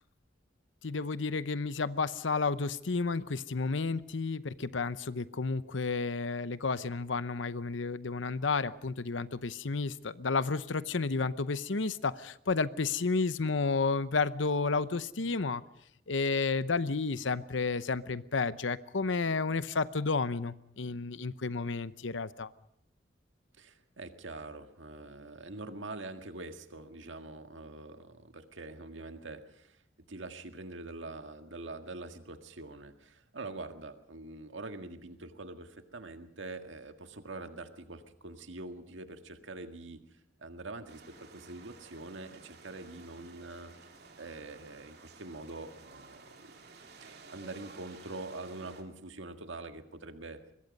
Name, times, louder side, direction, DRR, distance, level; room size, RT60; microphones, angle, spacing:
voice 1, 0.8-15.6 16.1-22.5, left 4 dB, 80° left, 15 dB, 0.8 m, -31 dB
voice 2, 23.6-29.8 30.1-40.0 40.4-43.7 44.2-46.5 47.0-50.4, right 2 dB, 80° right, 7 dB, 1.8 m, -44 dB
sound 1, 40.9-48.8, right 4 dB, 55° right, 2.6 m, -54 dB
24.5 x 21.5 x 5.4 m, 0.74 s
head